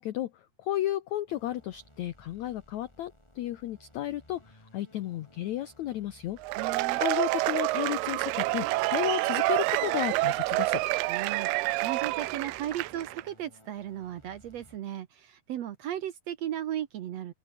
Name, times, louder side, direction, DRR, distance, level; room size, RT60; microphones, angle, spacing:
voice 1, 0.0-6.4 6.9-10.8, left 13 dB, 75° left, 1.6 m, -33 dB
sound 1, 1.3-14.8, left 1 dB, 5° left, 6.1 m, -58 dB
Cheering / Applause / Crowd, 6.4-13.2, right 20 dB, 90° right, 2.6 m, -28 dB
voice 2, 6.6-7.0 11.1-17.3, right 11 dB, 75° right, 1.5 m, -36 dB
open air
omnidirectional pair, 4.5 m